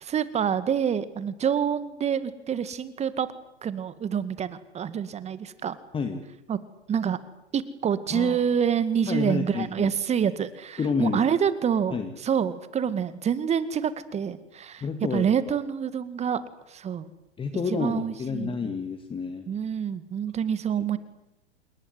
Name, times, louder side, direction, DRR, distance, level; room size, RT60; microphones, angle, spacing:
voice 1, 0.0-3.3 3.6-5.8 6.5-6.6 6.9-7.2 7.5-14.8 15.1-16.4 16.7-17.1 17.7-18.5 19.5-21.0, right 8 dB, 20° right, 14 dB, 2.0 m, -27 dB
voice 2, 8.1-8.4 9.0-9.9 10.8-11.2 11.9-12.2 14.8-15.5 17.4-19.4, left 5 dB, 15° left, 7 dB, 2.3 m, -29 dB
27.5 x 21.5 x 9.7 m, 0.84 s
hypercardioid pair, 110°, 34 cm